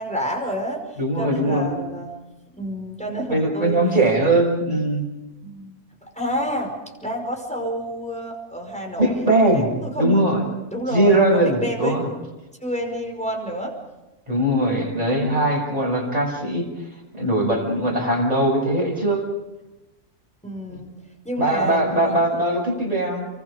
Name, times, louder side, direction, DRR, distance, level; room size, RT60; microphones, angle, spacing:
voice 1, 0.0-0.8 1.2-2.1 2.6-3.8 5.4-5.8 6.1-6.7 7.0-9.2 9.5-10.2 10.7-12.0 12.6-13.7 20.4-20.9 21.2-22.4, equal, 5° left, 1 dB, 5.2 m, -29 dB
voice 2, 1.0-1.7 3.3-5.0 9.0-9.7 10.0-10.4 10.9-12.1 14.3-16.7 17.1-19.2 20.7-20.8 21.4-23.3, right 1 dB, 25° right, -1 dB, 6.8 m, -20 dB
30.0 x 24.5 x 5.2 m, 1.0 s
omnidirectional pair, 1.6 m